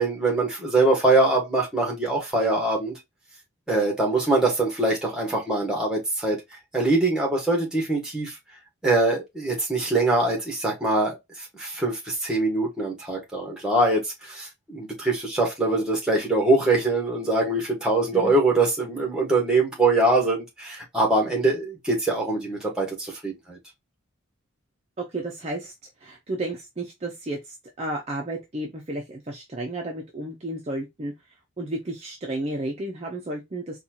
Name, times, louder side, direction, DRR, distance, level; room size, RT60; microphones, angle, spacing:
voice 1, 0.0-3.0 3.7-6.4 6.7-8.3 8.8-23.6, right 2 dB, 5° right, 1.2 m, -23 dB
voice 2, 25.0-25.7 26.0-31.1 31.6-33.8, right 1 dB, 30° right, 0.5 m, -32 dB
4.1 x 2.3 x 2.8 m
head